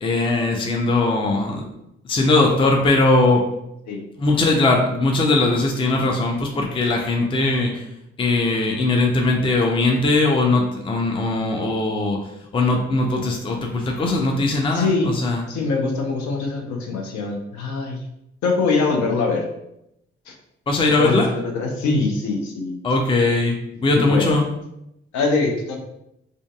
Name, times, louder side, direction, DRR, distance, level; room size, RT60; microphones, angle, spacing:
voice 1, 0.0-1.7 2.0-3.5 4.2-7.9 8.2-15.5 20.7-21.3 22.8-24.4, left 2 dB, 15° left, 1 dB, 0.4 m, -20 dB
voice 2, 14.7-15.1 15.5-18.0 18.4-19.4 20.3-20.4 21.0-21.2 21.5-22.8 23.9-24.4 25.1-25.8, left 3 dB, 70° left, 2 dB, 0.6 m, -23 dB
2.5 x 2.4 x 2.2 m, 0.82 s
hypercardioid pair, 40°, 30 cm